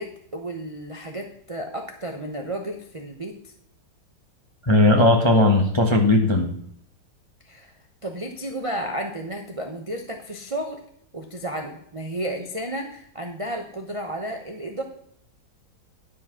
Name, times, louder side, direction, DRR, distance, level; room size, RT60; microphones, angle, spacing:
voice 1, 0.0-3.5 7.4-7.7 8.0-10.8 11.1-14.8, right 1 dB, 40° right, 2 dB, 0.4 m, -32 dB
voice 2, 4.6-6.5, left 2 dB, 25° left, 1 dB, 0.6 m, -17 dB
10.5 x 4.9 x 5.8 m, 0.67 s
omnidirectional pair, 2.2 m